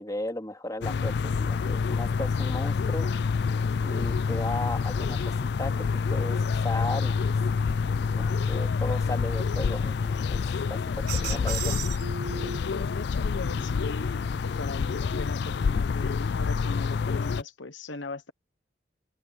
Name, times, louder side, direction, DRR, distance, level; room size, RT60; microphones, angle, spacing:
voice 1, 0.0-3.1 3.8-7.4 8.2-11.8, left 1 dB, 20° left, 2.6 m, -36 dB
sound 1, 0.8-17.4, left 5 dB, 60° left, 0.4 m, -27 dB
sound 2, 11.1-12.8 13.4-14.6, right 7 dB, 55° right, 5.9 m, -37 dB
voice 2, 12.4-18.3, left 2 dB, 80° left, 1.2 m, -39 dB
open air
head